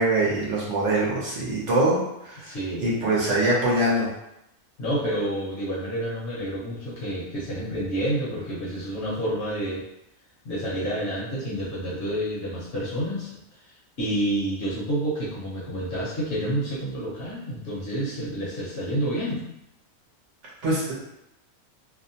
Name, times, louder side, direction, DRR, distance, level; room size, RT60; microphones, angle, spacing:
voice 1, 0.0-2.6 2.8-4.1 20.6-20.9, right 1 dB, 60° right, -5 dB, 0.9 m, -23 dB
voice 2, 2.4-2.9 4.8-9.8 10.4-13.4 14.0-19.4, right 1 dB, 55° left, -7 dB, 1.0 m, -29 dB
2.7 x 2.0 x 2.7 m, 0.84 s
omnidirectional pair, 1.5 m